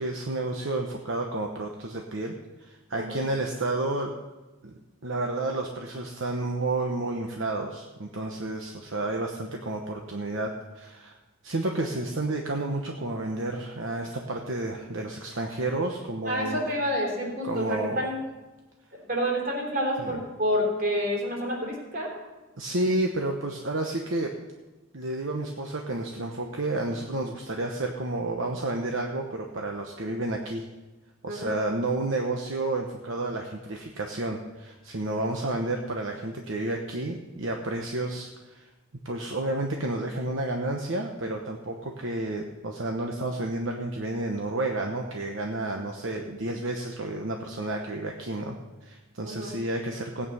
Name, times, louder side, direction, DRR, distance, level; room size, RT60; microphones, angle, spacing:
voice 1, 0.0-4.1 4.6-4.7 5.0-11.2 11.4-16.7 17.4-18.0 20.0-20.1 22.6-24.3 24.9-30.6 31.2-38.7 39.0-48.6 48.8-50.3, right 2 dB, 65° right, 2 dB, 1.1 m, -31 dB
voice 2, 16.2-18.2 19.0-22.1 31.3-31.6 49.2-49.5, equal, 45° right, -2 dB, 3.8 m, -28 dB
17.0 x 8.6 x 5.6 m, 1.1 s
head